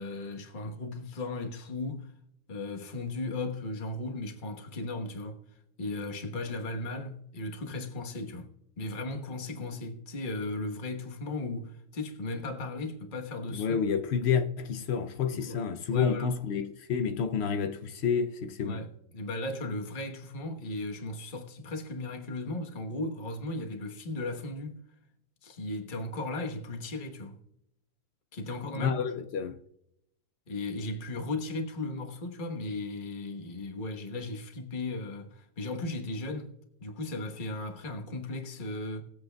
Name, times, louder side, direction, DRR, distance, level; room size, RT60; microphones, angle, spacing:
voice 1, 0.0-2.1 2.5-5.4 5.8-8.5 8.8-13.8 15.0-15.6 15.9-16.3 18.6-24.8 25.4-27.4 28.3-29.0 30.5-36.5 36.8-39.0, left 2 dB, 30° left, 1.2 m, -36 dB
voice 2, 13.5-18.8 28.7-29.6, left 7 dB, 75° left, 0.5 m, -29 dB
20.0 x 7.8 x 2.3 m
omnidirectional pair, 1.8 m